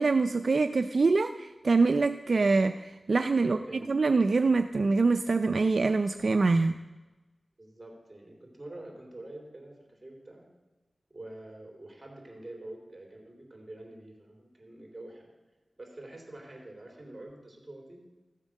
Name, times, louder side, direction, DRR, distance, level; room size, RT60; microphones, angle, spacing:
voice 1, 0.0-3.6 3.9-6.8, right 3 dB, 65° right, 8 dB, 0.4 m, -24 dB
voice 2, 3.3-4.0 7.6-10.5 11.1-15.3 15.8-18.0, right 1 dB, 25° right, 0 dB, 3.6 m, -46 dB
14.5 x 7.3 x 6.4 m, 1.2 s
wide cardioid pair, 60°, 0 cm